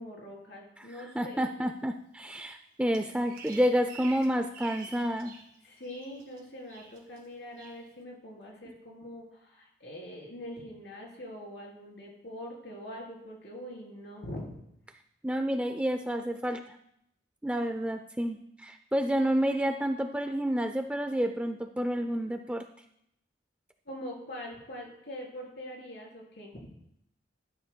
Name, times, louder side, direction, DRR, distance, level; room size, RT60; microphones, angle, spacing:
voice 1, 0.0-1.4 5.6-14.6 23.9-26.7, equal, 60° left, -2 dB, 3.7 m, -43 dB
voice 2, 1.1-5.4 15.2-16.8 17.4-22.6, equal, 5° right, 6 dB, 0.4 m, -29 dB
Bird vocalization bird call bird song, 2.9-5.5 5.8-6.4 6.7-7.2 7.6-7.8, right 4 dB, 50° right, 2.3 m, -47 dB
12.5 x 12.5 x 2.2 m, 0.76 s
head